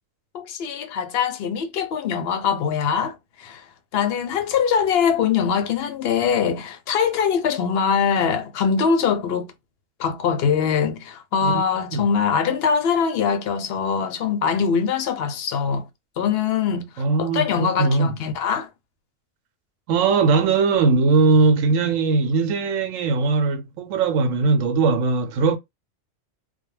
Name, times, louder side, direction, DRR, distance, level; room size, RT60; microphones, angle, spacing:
voice 1, 0.3-3.7 3.9-9.5 10.0-15.9 16.2-18.7, left 6 dB, 65° left, 0.7 m, -22 dB
voice 2, 11.4-12.1 17.0-18.1 19.9-25.6, right 4 dB, 90° right, 1.0 m, -20 dB
2.3 x 2.1 x 3.1 m
omnidirectional pair, 1.3 m